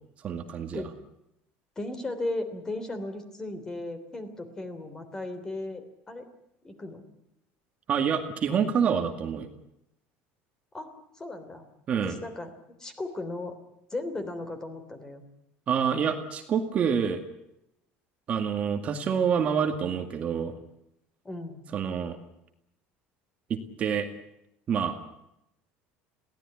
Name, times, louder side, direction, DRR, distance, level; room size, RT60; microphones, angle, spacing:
voice 1, 0.2-0.9 7.9-9.5 11.9-12.2 15.7-17.2 18.3-20.6 21.7-22.2 23.5-24.1 24.7-25.0, right 7 dB, 30° right, 5 dB, 2.0 m, -27 dB
voice 2, 1.7-6.3 6.6-7.0 10.7-11.6 12.0-12.5 12.8-13.5 13.9-15.2 21.2-21.6, left 2 dB, 15° left, 9 dB, 3.3 m, -36 dB
22.0 x 17.5 x 9.8 m, 0.84 s
cardioid pair, 160°, 4 cm